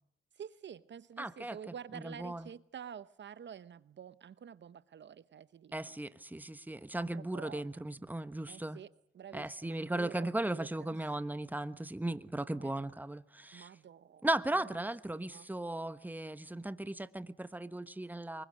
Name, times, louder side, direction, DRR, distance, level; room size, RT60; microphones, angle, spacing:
voice 1, 0.4-6.0 6.9-7.8 8.5-11.2 12.6-12.7 13.5-14.3 14.5-14.9 15.1-15.5, right 8 dB, 65° right, 0.9 m, -49 dB
voice 2, 1.2-1.6 1.9-2.5 5.7-8.8 9.3-13.7 14.2-18.4, right 1 dB, 10° right, 1.2 m, -37 dB
23.5 x 21.5 x 6.5 m
cardioid pair, 65°, 21 cm